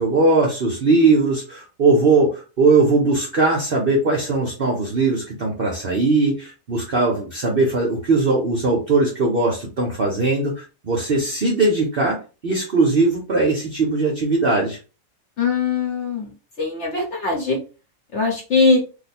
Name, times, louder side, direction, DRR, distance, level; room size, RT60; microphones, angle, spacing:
voice 1, 0.0-12.2 12.4-14.8, right 3 dB, 55° right, -1 dB, 0.6 m, -19 dB
voice 2, 15.4-16.3 16.6-17.6 18.1-18.8, left 4 dB, 55° left, 1 dB, 0.8 m, -20 dB
2.8 x 2.2 x 4.1 m, 0.33 s
omnidirectional pair, 1.8 m